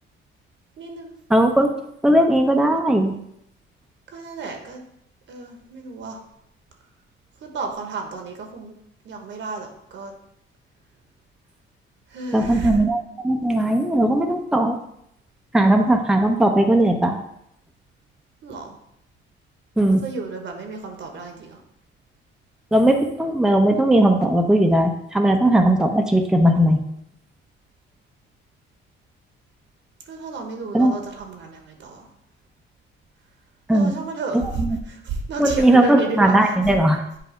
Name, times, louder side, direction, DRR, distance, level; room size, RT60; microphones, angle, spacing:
voice 1, 0.8-1.1 4.1-4.8 5.3-6.2 7.4-8.7 9.0-10.1 12.1-12.8 18.4-18.8 19.9-21.6 30.1-32.1 33.7-36.5, right 4 dB, 70° right, 3 dB, 1.2 m, -32 dB
voice 2, 1.3-1.7 2.0-3.1 12.3-14.8 15.5-17.2 19.8-20.0 22.7-26.8 30.7-30.9 33.7-33.9 34.6-34.7 35.4-37.0, right 1 dB, 5° right, 3 dB, 0.7 m, -18 dB
8.0 x 2.7 x 5.1 m, 0.75 s
cardioid pair, 90°, 20 cm